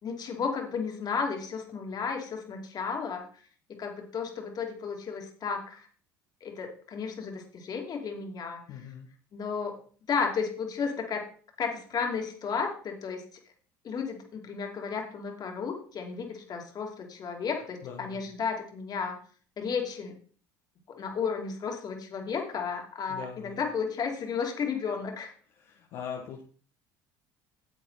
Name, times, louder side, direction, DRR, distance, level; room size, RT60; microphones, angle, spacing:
voice 1, 0.0-3.2 3.8-5.9 6.4-8.6 9.3-9.8 10.1-11.3 11.6-13.2 13.8-19.2 19.6-20.2 20.9-25.3, left 5 dB, 45° left, 2 dB, 2.8 m, -33 dB
voice 2, 8.7-9.1 17.8-18.2 23.1-23.6 25.5-26.4, left 7 dB, 60° left, -1 dB, 1.7 m, -41 dB
9.5 x 7.8 x 4.1 m, 0.43 s
supercardioid pair, 85°, 10 cm